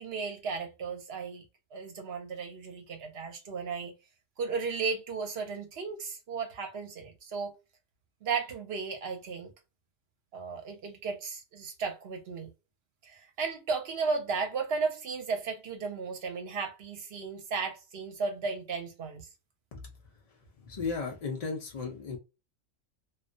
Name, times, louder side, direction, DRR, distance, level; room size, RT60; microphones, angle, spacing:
voice 1, 0.0-1.4 1.7-3.9 4.4-7.5 8.2-9.5 10.3-12.5 13.0-19.3, right 5 dB, 60° right, 0.8 m, -35 dB
voice 2, 20.6-22.2, left 4 dB, 65° left, 0.3 m, -35 dB
2.3 x 2.2 x 2.5 m
omnidirectional pair, 1.3 m